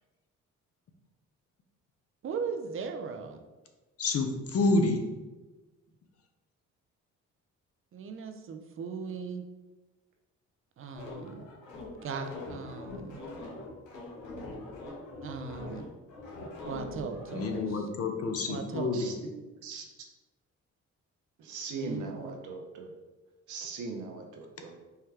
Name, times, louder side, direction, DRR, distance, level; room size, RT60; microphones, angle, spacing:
voice 1, 2.2-3.4 7.9-9.5 10.8-11.5 12.0-13.2 15.2-15.9 16.7-17.9 18.5-19.1 21.7-22.3, right 5 dB, 45° right, 6 dB, 0.5 m, -38 dB
voice 2, 4.0-5.0 17.3-19.1, left 2 dB, 50° left, 4 dB, 0.6 m, -28 dB
sound 1, 10.9-17.7, left 2 dB, 90° left, 1.1 m, -42 dB
voice 3, 21.4-22.9 23.5-24.7, right 4 dB, 75° right, 2 dB, 0.7 m, -40 dB
4.6 x 2.2 x 3.3 m, 1.2 s
cardioid pair, 90°, 30 cm